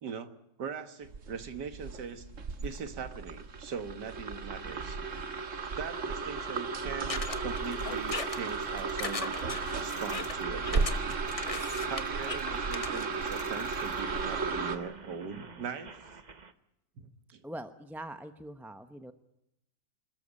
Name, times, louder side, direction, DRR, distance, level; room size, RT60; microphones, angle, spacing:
voice 1, 0.0-2.3 2.6-5.0 5.8-9.4 9.8-11.2 11.9-16.0 17.0-17.4, right 6 dB, 80° right, 9 dB, 2.1 m, -41 dB
sound 1, 1.0-14.8, right 4 dB, 50° right, 1.7 m, -34 dB
sound 2, 7.1-14.0, left 4 dB, 25° left, 0.8 m, -39 dB
sound 3, 9.1-16.5, right 5 dB, 30° right, 1.0 m, -51 dB
voice 2, 17.4-19.1, right 1 dB, ahead, 9 dB, 0.6 m, -43 dB
25.5 x 14.0 x 9.9 m, 0.83 s
omnidirectional pair, 1.8 m